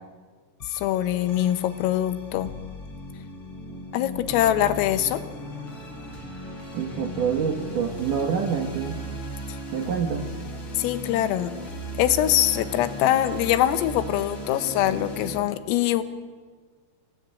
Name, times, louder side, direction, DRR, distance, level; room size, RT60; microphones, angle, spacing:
sound 1, 0.6-15.4, equal, 30° left, 4.1 m, -37 dB
voice 1, 0.7-2.5 3.9-5.2 10.8-11.5 12.0-16.0, left 12 dB, 90° left, 10 dB, 3.8 m, -23 dB
voice 2, 6.7-9.0 9.7-10.3, right 7 dB, 75° right, 4 dB, 1.9 m, -26 dB
26.0 x 17.5 x 9.0 m, 1.5 s
omnidirectional pair, 5.8 m